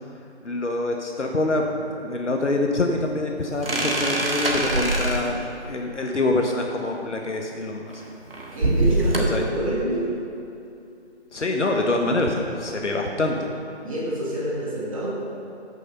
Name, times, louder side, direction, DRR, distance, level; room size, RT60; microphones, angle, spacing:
voice 1, 0.4-8.0 9.1-9.4 11.3-13.5, left 2 dB, 85° left, 2 dB, 1.4 m, -25 dB
sound 1, 3.6-5.4 7.9-9.4, right 2 dB, 55° right, 1.7 m, -23 dB
voice 2, 8.5-10.1 13.8-15.1, right 1 dB, 30° right, -6 dB, 2.5 m, -27 dB
15.0 x 6.5 x 5.4 m, 2.7 s
figure-of-eight pair, 170°, 35 cm